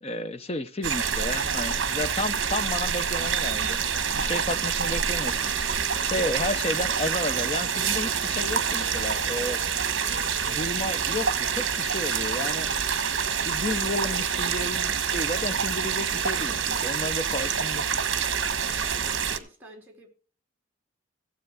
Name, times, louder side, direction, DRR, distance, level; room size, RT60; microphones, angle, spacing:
voice 1, 0.0-3.8 4.1-5.5 5.9-9.6 10.4-12.7 13.4-17.8, left 2 dB, 30° left, 0.7 m, -32 dB
sound 1, 0.8-19.4, right 7 dB, 60° right, 1.2 m, -27 dB
Harmonica, 4.4-9.8 10.1-10.6 11.0-17.0, left 2 dB, 70° left, 3.6 m, -49 dB
voice 2, 18.7-20.1, equal, 10° right, 3.8 m, -50 dB
16.0 x 7.7 x 4.8 m
head